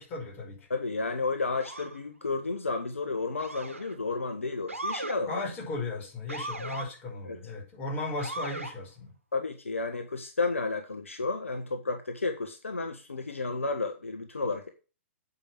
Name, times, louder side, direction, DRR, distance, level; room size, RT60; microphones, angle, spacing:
voice 1, 0.0-0.7 5.3-9.1, left 2 dB, 25° left, 5.6 m, -36 dB
voice 2, 0.7-5.4 7.2-7.4 9.3-14.7, left 3 dB, 75° left, 1.3 m, -32 dB
Motor vehicle (road) / Siren, 1.6-2.0 3.4-3.9 4.7-5.2 6.3-6.9 8.2-8.7, right 2 dB, 85° right, 1.8 m, -37 dB
8.7 x 5.4 x 5.9 m
figure-of-eight pair, 115°, 7 cm